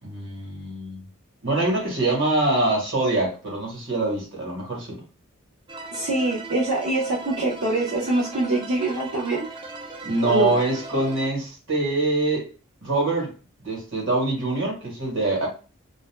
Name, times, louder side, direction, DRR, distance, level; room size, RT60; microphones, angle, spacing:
voice 1, 0.0-1.0 1.4-5.0 10.0-12.5 12.8-13.3 13.6-15.5, right 2 dB, 60° right, -2 dB, 1.4 m, -24 dB
sound 1, 5.7-11.3, right 2 dB, 20° right, 0.3 m, -38 dB
voice 2, 5.9-9.4 10.2-10.6, right 2 dB, 80° right, -4 dB, 0.7 m, -24 dB
2.6 x 2.1 x 3.2 m, 0.34 s
head